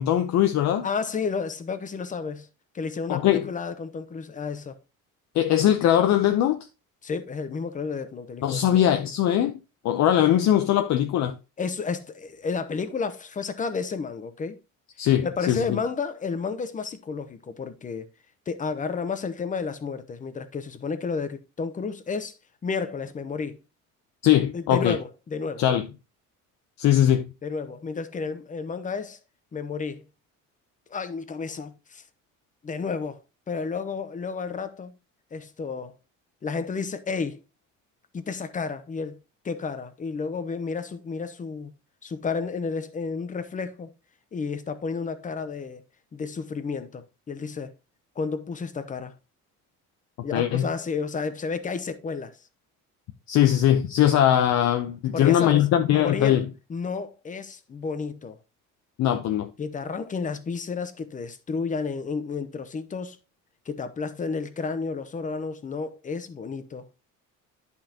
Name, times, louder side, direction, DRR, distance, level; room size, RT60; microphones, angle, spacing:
voice 1, 0.0-0.9 3.1-3.5 5.3-6.6 8.4-9.6 9.8-11.3 15.0-15.6 24.2-24.9 25.6-25.9 26.8-27.3 50.3-50.6 53.3-56.4 59.0-59.5, left 11 dB, 60° left, 0.7 m, -21 dB
voice 2, 0.8-2.5 2.7-4.8 7.0-8.9 11.6-14.6 15.2-18.1 18.5-22.3 22.6-23.6 24.5-25.7 27.4-29.2 29.5-30.0 30.9-32.0 32.6-33.2 33.5-34.9 35.3-35.9 36.4-37.4 38.1-39.2 39.4-41.7 42.0-43.9 44.3-45.8 46.1-47.7 48.2-49.1 50.2-52.4 55.1-56.4 56.7-58.4 59.6-63.2 63.7-66.9, left 5 dB, 25° left, 0.8 m, -31 dB
10.5 x 5.6 x 2.9 m
cardioid pair, 145°, 32 cm